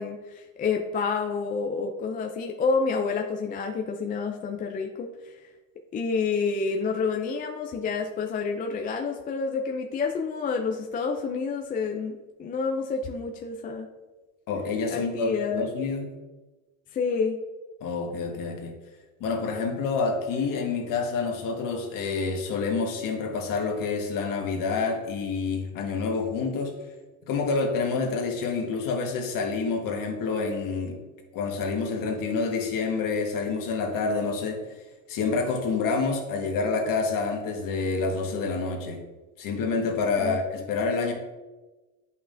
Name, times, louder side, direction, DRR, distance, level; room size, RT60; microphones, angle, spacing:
voice 1, 0.0-5.3 5.9-12.1 12.4-13.9 14.9-15.7 16.9-17.4 40.2-40.7, left 5 dB, 20° left, 2 dB, 0.4 m, -29 dB
voice 2, 14.5-16.2 17.8-18.7 19.2-26.7 27.3-31.0 31.3-34.6 35.1-39.0 39.4-41.1, left 4 dB, 50° left, 3 dB, 1.4 m, -28 dB
8.3 x 5.6 x 2.6 m, 1.2 s
supercardioid pair, 125°, 42 cm